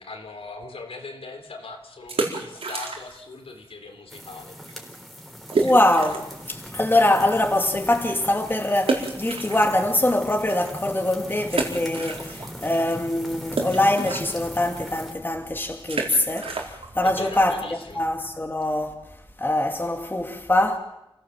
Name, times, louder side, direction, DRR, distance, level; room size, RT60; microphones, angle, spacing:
voice 1, 0.0-4.9 17.0-18.0, left 3 dB, 80° left, 4.0 m, -40 dB
sound 1, 2.0-3.3 3.6-3.7 4.3-4.4 4.7-4.8 5.5-6.4 6.9-7.0 8.8-10.1 10.6-10.7 11.5-12.7 12.9-18.4, right 3 dB, 85° right, 4.3 m, -30 dB
sound 2, 4.1-15.1, equal, ahead, 4.0 m, -40 dB
voice 2, 5.6-18.9 19.4-20.8, left 1 dB, 20° left, 2.6 m, -23 dB
29.0 x 16.5 x 7.5 m
wide cardioid pair, 95°, 10 cm